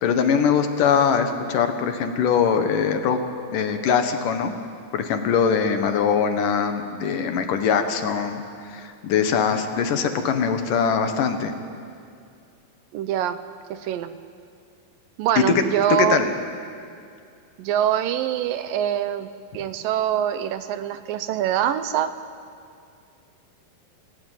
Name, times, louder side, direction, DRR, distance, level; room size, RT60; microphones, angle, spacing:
voice 1, 0.0-3.2 3.5-4.6 4.9-11.6 15.4-15.6 16.0-16.3, left 6 dB, 70° left, 7 dB, 2.7 m, -22 dB
voice 2, 12.9-13.4 13.7-14.1 15.2-16.3 17.6-22.1, right 10 dB, 75° right, 11 dB, 2.4 m, -24 dB
26.5 x 17.0 x 9.2 m, 2.4 s
omnidirectional pair, 4.2 m